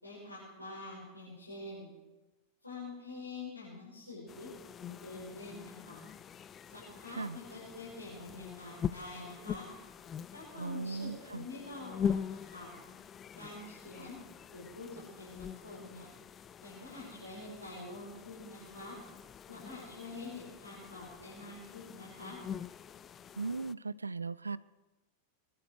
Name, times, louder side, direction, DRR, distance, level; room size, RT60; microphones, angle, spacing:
voice 1, 0.0-1.9 2.6-4.5 4.8-6.0 6.7-9.7 10.3-12.7 13.3-14.2 14.5-16.1 16.6-18.9 19.5-22.4, left 2 dB, 85° left, -8 dB, 6.1 m, -46 dB
sound 1, 4.3-23.7, left 8 dB, 25° left, 0.4 m, -43 dB
voice 2, 10.5-11.5 23.4-24.6, right 4 dB, 80° right, 19 dB, 0.4 m, -38 dB
24.5 x 11.0 x 4.7 m, 1.1 s
figure-of-eight pair, 90°, 0 cm